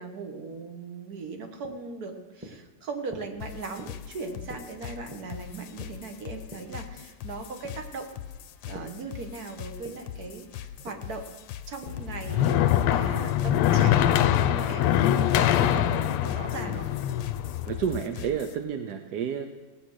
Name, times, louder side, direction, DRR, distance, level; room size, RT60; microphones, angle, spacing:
voice 1, 0.0-8.1 8.6-11.3 11.7-15.0 15.4-16.9, right 4 dB, 50° right, 5 dB, 1.8 m, -39 dB
sound 1, 1.6-9.0 9.3-13.2, equal, 5° right, 1.5 m, -48 dB
sound 2, 3.4-18.6, left 10 dB, 70° left, 1.3 m, -42 dB
sound 3, 11.9-18.0, left 11 dB, 85° left, 1.6 m, -24 dB
voice 2, 17.6-19.5, right 8 dB, 65° right, 7 dB, 1.1 m, -30 dB
18.0 x 9.0 x 6.4 m, 1.1 s
omnidirectional pair, 2.4 m